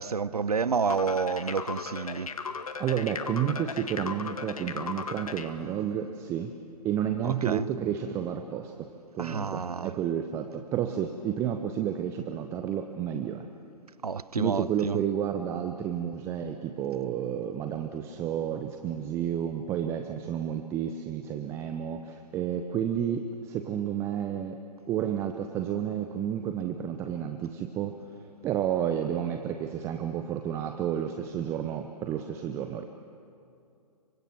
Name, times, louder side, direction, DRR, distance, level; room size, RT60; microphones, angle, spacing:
voice 1, 0.0-2.3 7.2-7.7 9.2-9.9 14.0-15.0, right 5 dB, 65° right, 0.9 m, -29 dB
sound 1, 0.9-5.5, left 5 dB, 60° left, 1.6 m, -36 dB
voice 2, 2.8-6.5 6.8-8.9 9.1-13.5 14.4-24.6 24.9-32.8, right 9 dB, 15° right, 0.7 m, -31 dB
28.0 x 24.0 x 6.0 m
figure-of-eight pair, 130°, 21 cm